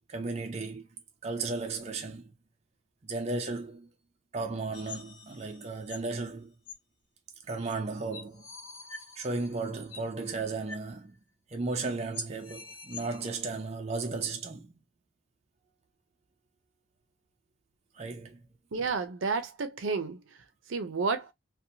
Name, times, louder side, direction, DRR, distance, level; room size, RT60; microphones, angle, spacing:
voice 1, 0.1-0.9 1.2-2.3 3.0-3.9 4.3-6.5 7.5-8.5 9.2-11.2 11.5-14.8 18.0-18.4, right 3 dB, 35° right, 0.4 m, -35 dB
sound 1, 4.7-6.1 6.6-6.7 7.7-7.8 8.1-10.1 10.7-10.9 11.1-11.2 11.7-11.8 12.1-13.4, left 5 dB, 85° left, 0.9 m, -46 dB
voice 2, 18.7-20.2 20.7-21.3, right 4 dB, 75° right, 0.5 m, -31 dB
2.7 x 2.2 x 2.6 m
head